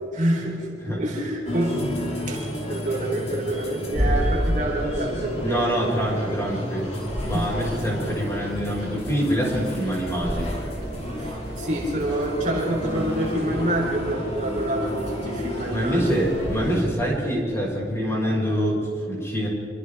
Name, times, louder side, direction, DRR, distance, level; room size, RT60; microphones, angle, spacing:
voice 1, 0.1-1.8 2.2-5.9 7.3-7.8 11.2-16.2, right 1 dB, 40° right, -2 dB, 4.1 m, -27 dB
sound 1, 1.4-16.8, equal, 35° left, 5.6 m, -30 dB
voice 2, 5.4-6.9 7.2-10.5 15.7-19.5, equal, 15° left, -4 dB, 6.3 m, -25 dB
sound 2, 8.3-16.3, right 1 dB, 25° right, 6.3 m, -41 dB
27.5 x 25.5 x 3.7 m, 2.9 s
head